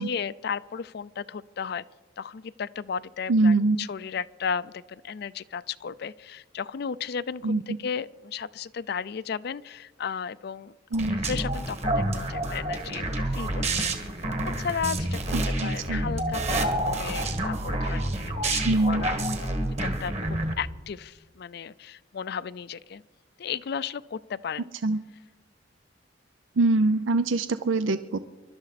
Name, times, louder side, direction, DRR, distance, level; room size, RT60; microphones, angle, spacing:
voice 1, 0.0-1.8 2.2-10.7 11.1-14.0 14.6-15.3 15.6-19.3 19.6-23.0 23.4-24.7, left 6 dB, 55° left, 17 dB, 0.4 m, -34 dB
voice 2, 3.3-3.8 7.4-7.6 10.9-11.2 15.3-16.0 18.6-19.0 24.8-25.0 26.6-28.2, right 2 dB, 85° right, 12 dB, 0.5 m, -23 dB
sound 1, 10.9-20.5, right 1 dB, 35° right, 1.5 m, -28 dB
26.0 x 12.5 x 4.1 m, 1.3 s
head